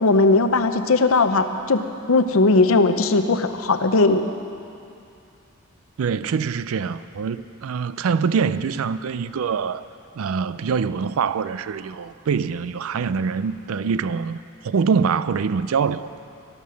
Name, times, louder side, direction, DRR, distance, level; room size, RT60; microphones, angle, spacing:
voice 1, 0.0-4.3, left 3 dB, 70° left, 8 dB, 0.7 m, -18 dB
voice 2, 6.0-9.8 10.2-14.4 14.6-16.1, right 6 dB, 70° right, 15 dB, 0.4 m, -24 dB
13.0 x 12.5 x 6.3 m, 2.5 s
head